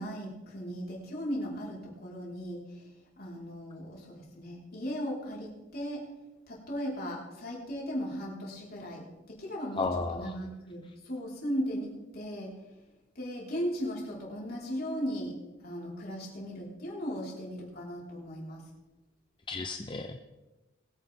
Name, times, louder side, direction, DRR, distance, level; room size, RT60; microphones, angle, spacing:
voice 1, 0.0-2.8 3.2-6.0 6.5-12.6 13.1-15.3 15.6-18.6, equal, 50° left, -4 dB, 4.7 m, -37 dB
voice 2, 9.8-10.4 19.5-20.2, left 3 dB, 25° left, 5 dB, 0.6 m, -33 dB
22.0 x 9.9 x 3.7 m, 1.1 s
head